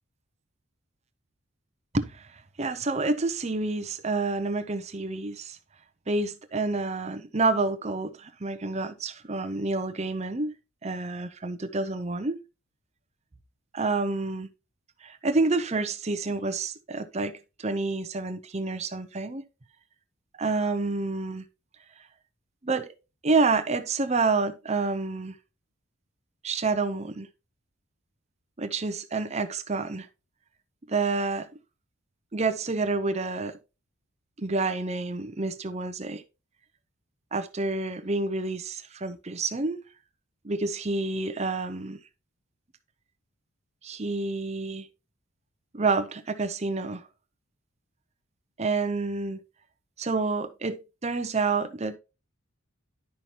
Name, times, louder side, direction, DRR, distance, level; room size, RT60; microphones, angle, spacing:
voice 1, 2.6-5.6 6.1-10.5 10.8-12.4 13.7-14.5 15.0-17.3 17.6-19.4 20.4-21.4 22.6-22.9 23.2-25.3 26.4-27.3 28.6-30.1 30.9-31.5 32.3-33.6 34.4-36.2 37.3-39.8 40.4-42.0 43.8-44.9 45.7-47.0 48.6-49.4 50.0-52.0, right 3 dB, 30° right, 0.7 m, -28 dB
11.0 x 5.7 x 2.9 m
head